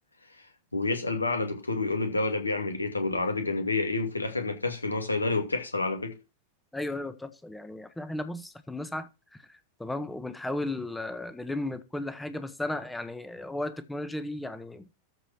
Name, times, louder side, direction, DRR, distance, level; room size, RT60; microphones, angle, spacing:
voice 1, 0.7-6.1, left 3 dB, 80° left, 2.3 m, -29 dB
voice 2, 6.7-9.1 9.5-14.9, left 1 dB, 5° left, 1.4 m, -35 dB
13.5 x 4.9 x 6.1 m
figure-of-eight pair, 90°, 0 cm